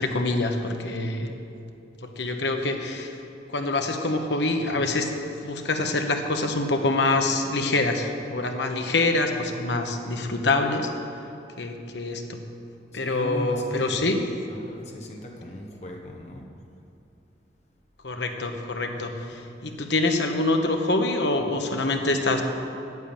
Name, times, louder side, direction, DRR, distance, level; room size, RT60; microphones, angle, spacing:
voice 1, 0.0-1.3 2.2-3.1 3.5-5.1 5.4-10.9 11.6-12.4 12.9-14.2 18.0-22.4, left 2 dB, 75° left, 4 dB, 1.2 m, -25 dB
voice 2, 13.0-14.0 14.7-16.5, left 1 dB, 40° left, 1 dB, 1.4 m, -38 dB
9.4 x 7.6 x 9.0 m, 2.8 s
head